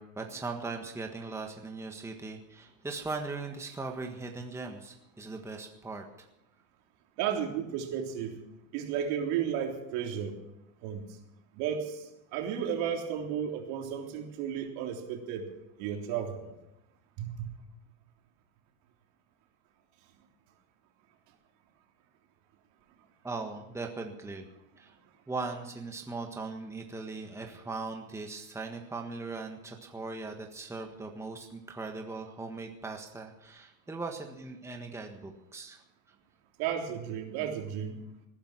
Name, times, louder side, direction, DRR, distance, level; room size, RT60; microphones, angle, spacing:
voice 1, 0.0-6.3 23.2-24.4 24.8-24.9 25.3-35.8, right 3 dB, 5° right, 3 dB, 1.6 m, -39 dB
voice 2, 7.2-8.4 8.7-10.4 10.8-11.1 11.6-15.5 15.8-16.5 17.2-17.5 36.6-38.0, right 8 dB, 60° right, 2 dB, 3.5 m, -33 dB
19.5 x 10.5 x 6.1 m, 0.88 s
supercardioid pair, 120°, 42 cm